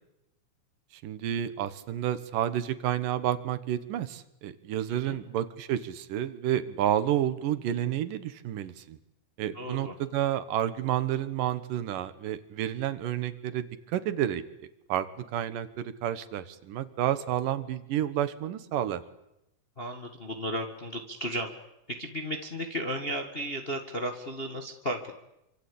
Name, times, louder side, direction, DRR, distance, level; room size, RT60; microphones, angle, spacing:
voice 1, 1.0-9.0 9.4-19.0, right 11 dB, 85° right, 13 dB, 3.0 m, -30 dB
voice 2, 4.9-5.2 9.5-9.9 19.8-21.5 21.9-25.1, equal, 25° left, 4 dB, 1.5 m, -34 dB
27.0 x 25.5 x 8.6 m, 0.87 s
omnidirectional pair, 3.7 m